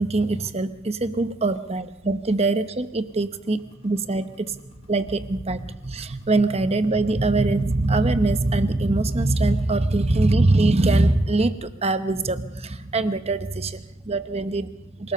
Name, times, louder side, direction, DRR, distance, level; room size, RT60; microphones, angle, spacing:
voice 1, 0.0-4.6 4.9-15.1, right 2 dB, 30° right, 11 dB, 0.9 m, -23 dB
sound 1, 3.1-11.6, equal, 25° left, 6.1 m, -50 dB
26.5 x 18.5 x 5.6 m, 0.93 s
head